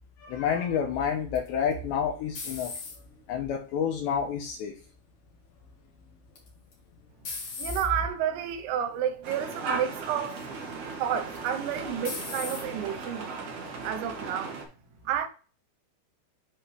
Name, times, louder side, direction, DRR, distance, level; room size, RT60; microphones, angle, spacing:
voice 1, 0.2-2.7 3.3-4.7, left 7 dB, 75° left, 2.8 m, -29 dB
sound 1, 1.3-3.3 3.8-4.3 6.3-6.7 7.2-7.9 8.7-8.9 9.3-9.4 11.3-11.7 12.0-12.7, left 4 dB, 45° left, 2.4 m, -38 dB
voice 2, 7.6-10.4 10.9-13.3 13.8-14.6 15.1-15.3, right 9 dB, 80° right, 3.5 m, -30 dB
sound 2, 9.2-14.6, right 4 dB, 60° right, 1.9 m, -37 dB
10.5 x 3.9 x 3.2 m
omnidirectional pair, 5.9 m